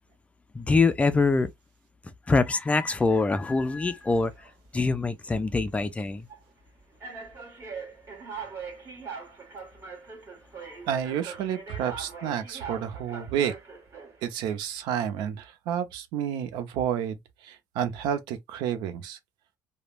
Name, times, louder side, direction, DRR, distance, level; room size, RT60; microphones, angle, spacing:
voice 1, 0.5-1.5 2.3-4.3 4.7-6.3, left 3 dB, 15° left, 0.4 m, -24 dB
sound 1, 4.0-4.5 5.3-5.5 6.3-6.4 7.0-14.3, right 5 dB, 35° right, 1.5 m, -42 dB
voice 2, 10.9-13.5 14.2-19.2, right 9 dB, 75° right, 0.7 m, -30 dB
3.1 x 2.1 x 2.4 m
cardioid pair, 110°, 8 cm